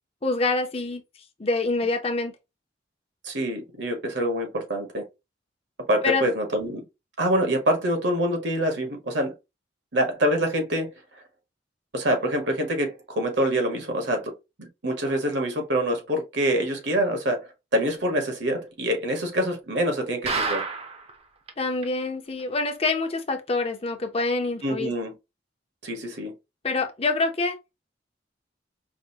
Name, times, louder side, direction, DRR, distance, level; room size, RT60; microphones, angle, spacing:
voice 1, 0.2-1.0 1.4-2.3 6.0-6.2 21.6-24.9 26.6-27.6, left 3 dB, 35° left, 0.7 m, -26 dB
voice 2, 3.2-5.0 5.9-6.8 7.2-9.3 9.9-10.9 11.9-14.3 14.6-20.6 24.6-25.1 25.8-26.3, equal, 70° right, 1.2 m, -25 dB
sound 1, 20.3-21.1 21.5-21.6 21.8-21.9 22.4-22.5, right 4 dB, 35° right, 0.7 m, -28 dB
5.0 x 2.1 x 2.7 m
head